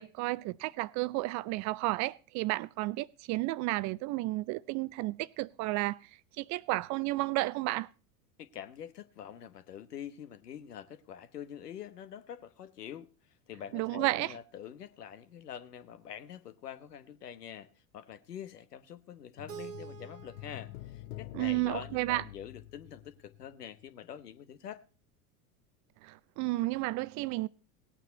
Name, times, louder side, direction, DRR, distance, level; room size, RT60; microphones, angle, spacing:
voice 1, 0.0-6.0 6.4-7.9 13.7-14.3 21.3-22.2 26.0-27.5, right 20 dB, 40° right, 0.5 m, -32 dB
voice 2, 8.4-13.1 13.5-24.8, left 9 dB, 80° left, 1.2 m, -45 dB
sound 1, 19.4-23.8 24.1-24.2, left 16 dB, 65° left, 0.9 m, -47 dB
Keyboard (musical), 19.5-22.4, right 9 dB, 90° right, 1.3 m, -49 dB
17.5 x 9.1 x 4.0 m
hypercardioid pair, 90°, 46 cm